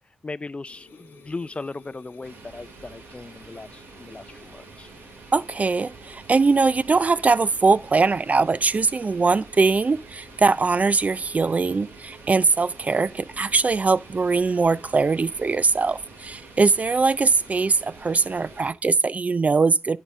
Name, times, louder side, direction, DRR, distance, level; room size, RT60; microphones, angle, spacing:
voice 1, 0.2-4.9, left 3 dB, 30° left, 0.4 m, -37 dB
sound 1, 0.7-18.7, left 3 dB, 85° left, 1.3 m, -51 dB
sound 2, 2.2-18.7, right 5 dB, 85° right, 1.2 m, -47 dB
voice 2, 5.3-20.0, right 4 dB, 40° right, 0.4 m, -21 dB
9.0 x 8.2 x 3.6 m
cardioid pair, 50°, 4 cm